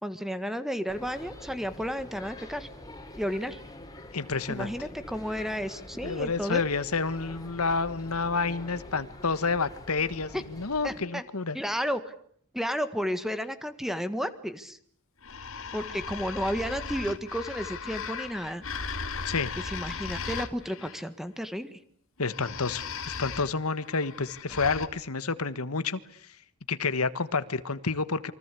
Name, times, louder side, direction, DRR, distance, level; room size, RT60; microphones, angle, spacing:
voice 1, 0.0-2.7 3.2-3.6 4.5-6.6 10.3-10.4 10.8-11.2 11.5-12.1 12.5-14.8 15.7-18.6 19.6-21.8, equal, ahead, 11 dB, 1.6 m, -32 dB
sound 1, 0.9-11.0, left 1 dB, 15° left, 3.8 m, -45 dB
voice 2, 4.1-4.7 6.0-11.6 19.2-19.5 22.2-26.0 26.7-28.3, left 4 dB, 85° left, 14 dB, 1.5 m, -29 dB
sound 2, 15.2-21.0 22.2-24.9, left 5 dB, 65° left, 2.3 m, -37 dB
28.5 x 24.0 x 8.4 m, 0.63 s
head